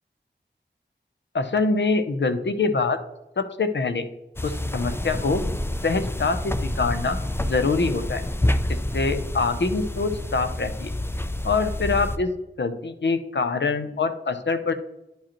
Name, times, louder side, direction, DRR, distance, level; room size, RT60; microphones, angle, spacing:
voice 1, 1.3-3.0 3.4-4.0 4.4-5.4 5.8-7.2 7.4-8.2 8.7-10.9 11.4-12.3 12.6-14.7, left 4 dB, 70° left, 9 dB, 0.7 m, -24 dB
sound 1, 4.4-12.2, left 1 dB, 10° left, 0.4 m, -28 dB
10.0 x 4.9 x 3.0 m, 0.94 s
wide cardioid pair, 65°, 19 cm